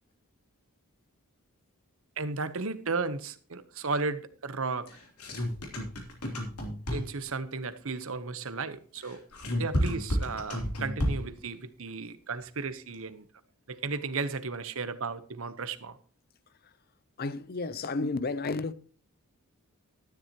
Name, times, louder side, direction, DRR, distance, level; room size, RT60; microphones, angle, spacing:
voice 1, 2.2-4.9 6.9-9.2 9.6-13.3 13.7-16.0, right 4 dB, 65° right, 1.0 m, -34 dB
sound 1, 4.9-7.3 9.0-11.4, equal, 90° left, 3.2 m, -31 dB
voice 2, 17.2-18.7, left 3 dB, 45° left, 0.6 m, -32 dB
13.0 x 10.5 x 3.0 m
head